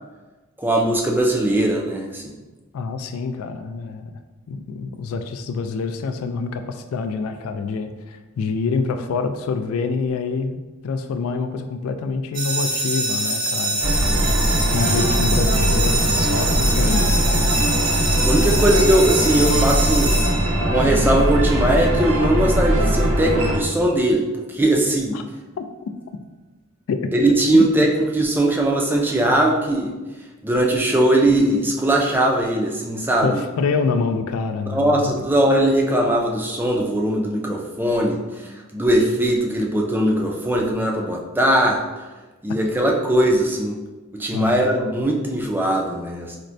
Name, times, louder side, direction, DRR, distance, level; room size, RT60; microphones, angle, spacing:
voice 1, 0.6-2.4 18.2-20.2 20.7-25.2 27.1-29.9 30.4-33.4 34.7-41.8 42.4-43.8 44.1-46.4, right 1 dB, 10° right, 0 dB, 0.3 m, -20 dB
voice 2, 2.7-4.1 4.5-14.1 14.7-17.6 25.1-25.2 25.6-25.7 26.9-27.1 27.5-27.8 33.2-35.1 44.3-44.6, left 4 dB, 75° left, 10 dB, 0.3 m, -26 dB
sound 1, 12.3-21.0, right 2 dB, 40° right, 0.6 m, -24 dB
sound 2, 13.8-23.6, equal, 80° right, 0.6 m, -20 dB
4.2 x 2.1 x 2.5 m, 1.2 s
head